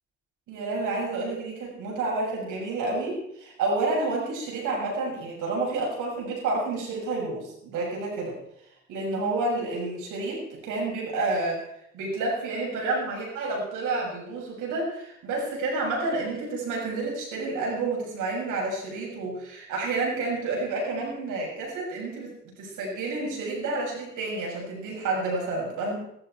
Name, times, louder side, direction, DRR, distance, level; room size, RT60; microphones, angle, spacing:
voice 1, 0.5-8.4 8.9-11.6 11.9-26.0, right 3 dB, 85° right, -2 dB, 7.2 m, -29 dB
16.5 x 14.0 x 4.6 m, 0.77 s
cardioid pair, 90°, 30 cm